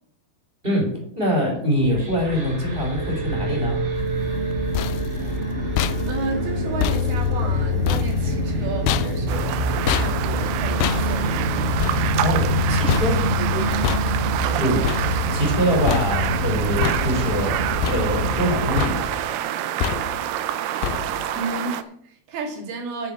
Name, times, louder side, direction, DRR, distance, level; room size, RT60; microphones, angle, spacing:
voice 1, 0.6-3.8 12.2-13.1 14.5-14.8 15.3-19.2, equal, 15° right, 1 dB, 3.3 m, -24 dB
sound 1, 1.8-19.2, equal, 35° right, 1.1 m, -25 dB
sound 2, 4.4-15.6 15.9-16.5 16.8-17.5 17.8-18.5 18.8-19.3 19.8-20.4 20.8-21.4, left 10 dB, 80° left, 2.5 m, -29 dB
voice 2, 6.0-11.7 12.9-13.9 14.4-14.6 21.3-23.1, right 3 dB, 70° right, 2 dB, 4.2 m, -33 dB
sound 3, 9.3-21.8, right 11 dB, 85° right, 2.7 m, -27 dB
9.9 x 6.9 x 7.5 m, 0.65 s
omnidirectional pair, 4.7 m